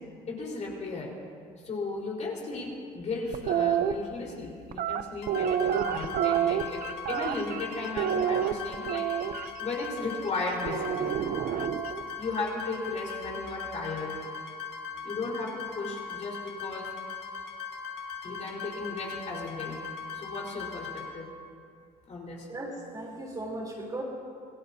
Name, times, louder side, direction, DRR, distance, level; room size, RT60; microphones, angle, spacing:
voice 1, 0.3-1.1 1.6-9.1 9.6-11.2 12.2-14.2 15.0-16.9 18.2-19.8 20.1-21.3 22.1-22.5, left 3 dB, 45° left, -2 dB, 4.4 m, -35 dB
sound 1, 3.3-3.9 4.7-7.6 8.0-9.5 10.7-12.0, right 9 dB, 60° right, 0.7 m, -28 dB
sound 2, 5.2-21.1, left 6 dB, 80° left, 2.4 m, -40 dB
voice 2, 22.5-24.0, right 2 dB, 20° right, -2 dB, 3.5 m, -37 dB
26.5 x 18.5 x 2.8 m, 2.3 s
cardioid pair, 110°, 17 cm